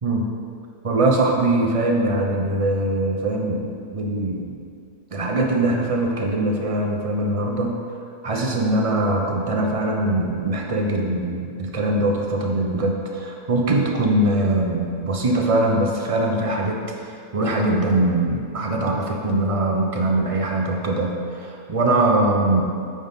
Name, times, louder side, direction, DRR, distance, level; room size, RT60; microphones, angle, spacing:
voice 1, 0.8-4.6 5.1-7.7 8.2-22.7, right 2 dB, 65° right, 1 dB, 0.3 m, -22 dB
8.8 x 3.9 x 5.4 m, 2.5 s
omnidirectional pair, 1.6 m